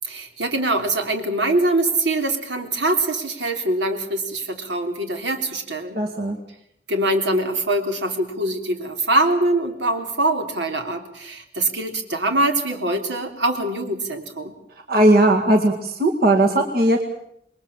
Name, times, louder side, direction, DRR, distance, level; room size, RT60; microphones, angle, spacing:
voice 1, 0.0-6.0 6.9-14.5, right 2 dB, 80° right, 5 dB, 3.5 m, -23 dB
voice 2, 5.9-6.4 14.9-17.0, right 1 dB, 55° right, 3 dB, 2.1 m, -17 dB
27.5 x 21.5 x 7.3 m, 0.75 s
head